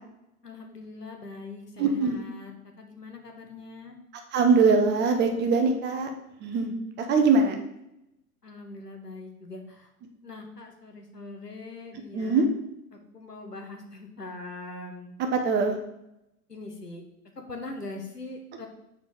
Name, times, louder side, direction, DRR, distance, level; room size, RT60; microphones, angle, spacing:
voice 1, 0.4-2.5 2.8-4.0 8.4-9.9 10.2-12.5 13.1-15.1 16.5-17.0 17.5-18.7, left 2 dB, 90° left, 3 dB, 1.3 m, -42 dB
voice 2, 1.8-2.2 4.3-6.1 6.4-6.7 7.1-7.5 12.1-12.5 15.2-15.8, right 4 dB, 25° right, 4 dB, 0.9 m, -22 dB
7.0 x 4.4 x 5.0 m, 0.86 s
figure-of-eight pair, 95°, 46 cm